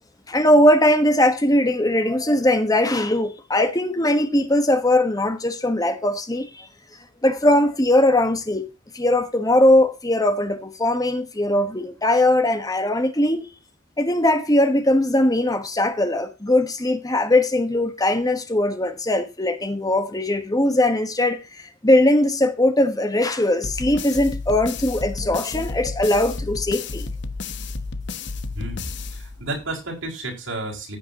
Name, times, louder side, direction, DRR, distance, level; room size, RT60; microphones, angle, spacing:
voice 1, 0.3-6.7 7.2-8.7 8.9-13.5 14.0-27.0, left 1 dB, 20° left, 1.3 m, -20 dB
sound 1, 23.6-29.7, left 3 dB, 60° left, 1.0 m, -32 dB
voice 2, 28.5-31.0, right 2 dB, 80° right, 5.2 m, -32 dB
15.0 x 9.1 x 2.9 m
head